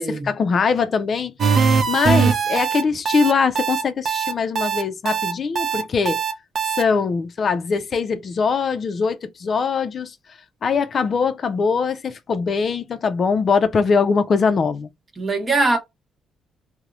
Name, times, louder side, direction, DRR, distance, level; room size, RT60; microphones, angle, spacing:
voice 1, 0.0-1.3 1.9-6.2 6.8-10.1 10.6-14.9, left 5 dB, 50° left, 0.3 m, -22 dB
sound 1, 1.4-6.8, right 6 dB, 55° right, 0.5 m, -21 dB
voice 2, 15.2-15.8, right 3 dB, 35° right, 0.9 m, -21 dB
2.8 x 2.0 x 2.3 m
cardioid pair, 90°, 0 cm